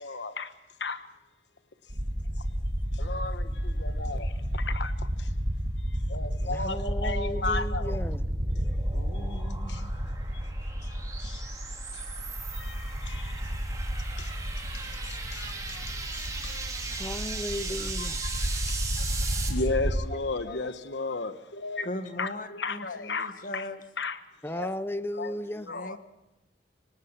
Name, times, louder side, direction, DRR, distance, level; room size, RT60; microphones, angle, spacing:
voice 1, 0.0-0.4 0.8-1.0 3.1-3.3 3.8-4.2 4.7-4.9 6.1-7.9 19.5-21.3 21.6-21.9 22.2-22.3 22.6-23.6 24.0-24.1 24.5-24.7 25.2-25.3 25.7-26.0, left 3 dB, 85° left, 1.3 m, -32 dB
sound 1, 1.9-20.0, equal, 65° right, 2.5 m, -31 dB
voice 2, 6.5-8.2 9.2-9.4 17.0-18.2 24.4-25.7, left 1 dB, 15° left, 0.7 m, -35 dB
sound 2, 8.2-19.5, right 4 dB, 20° right, 3.5 m, -39 dB
voice 3, 20.1-20.6 21.8-23.8 25.7-26.0, left 1 dB, 50° left, 1.6 m, -38 dB
26.0 x 18.0 x 5.8 m
head